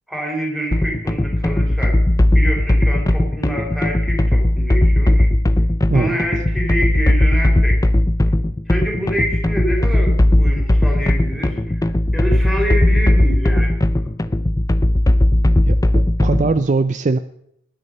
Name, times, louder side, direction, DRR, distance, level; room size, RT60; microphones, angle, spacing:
voice 1, 0.1-2.0 2.3-5.3 5.9-7.9 8.7-13.8, equal, ahead, -1 dB, 4.1 m, -26 dB
sound 1, 0.7-16.6, left 1 dB, 15° left, 0.5 m, -16 dB
voice 2, 15.6-17.2, right 3 dB, 35° right, 13 dB, 0.4 m, -20 dB
19.5 x 9.7 x 5.4 m, 0.75 s
head